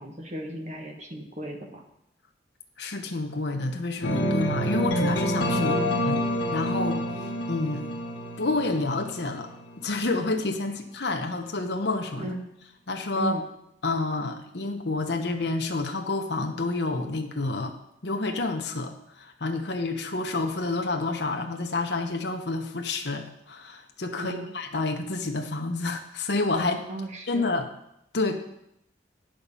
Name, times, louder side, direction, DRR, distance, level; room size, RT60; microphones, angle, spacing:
voice 1, 0.0-1.8 5.5-5.9 12.2-12.4 13.1-13.4 24.1-24.5 26.9-27.5, right 1 dB, 35° right, 3 dB, 1.3 m, -35 dB
voice 2, 2.8-5.8 6.0-6.2 6.5-7.0 7.5-7.8 8.4-9.5 9.8-12.3 12.9-13.4 13.8-17.7 18.0-26.9 27.3-27.7 28.1-28.3, left 3 dB, 60° left, 4 dB, 1.0 m, -29 dB
sound 1, 4.0-9.9, equal, 85° left, 1.4 m, -28 dB
9.0 x 5.5 x 6.9 m, 0.77 s
head